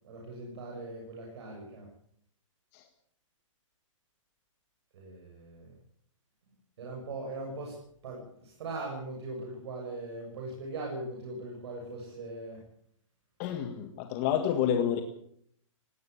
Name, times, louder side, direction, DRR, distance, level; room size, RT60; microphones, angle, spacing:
voice 1, 0.0-1.9 4.9-5.7 6.8-12.6, right 2 dB, 50° right, 0 dB, 7.7 m, -40 dB
voice 2, 13.4-15.0, left 9 dB, 25° left, 6 dB, 1.7 m, -29 dB
18.5 x 18.5 x 8.6 m, 0.67 s
hypercardioid pair, 165°, 17 cm